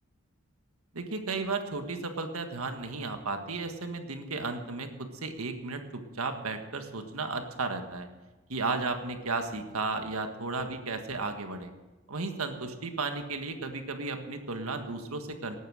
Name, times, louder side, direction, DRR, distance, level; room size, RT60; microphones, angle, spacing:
voice 1, 0.9-4.9 5.2-8.1 8.5-11.7 12.1-15.6, right 3 dB, 90° right, 6 dB, 1.6 m, -34 dB
18.0 x 9.2 x 6.4 m, 1.2 s
head